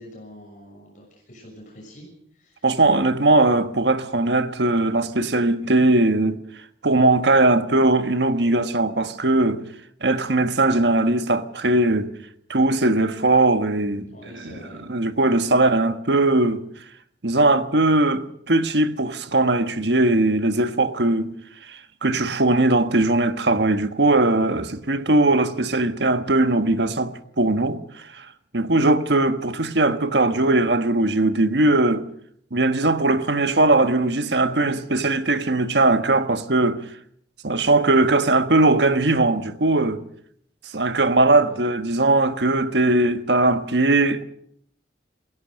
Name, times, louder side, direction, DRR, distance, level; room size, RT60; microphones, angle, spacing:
voice 1, 0.0-2.7 14.1-14.9 41.3-41.7, equal, 45° left, 6.8 m, -45 dB
voice 2, 2.6-6.4 6.8-9.6 10.0-12.1 12.5-14.0 14.4-14.5 14.9-16.6 17.2-21.3 21.7-28.2 28.5-32.1 32.5-36.8 37.4-40.0 40.7-44.2, right 2 dB, 70° right, 1.5 m, -19 dB
27.5 x 16.5 x 6.5 m
head